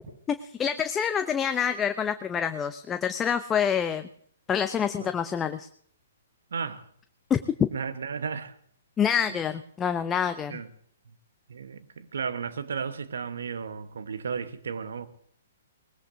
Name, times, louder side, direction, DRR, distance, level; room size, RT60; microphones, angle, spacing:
voice 1, 0.3-4.1 4.5-5.7 7.3-7.4 9.0-10.6, left 8 dB, 15° left, 0.6 m, -27 dB
voice 2, 6.5-6.8 7.7-8.5 9.3-9.4 10.5-10.7 11.5-15.1, right 6 dB, 70° right, 1.2 m, -34 dB
20.0 x 20.0 x 2.7 m
figure-of-eight pair, 125°, 0 cm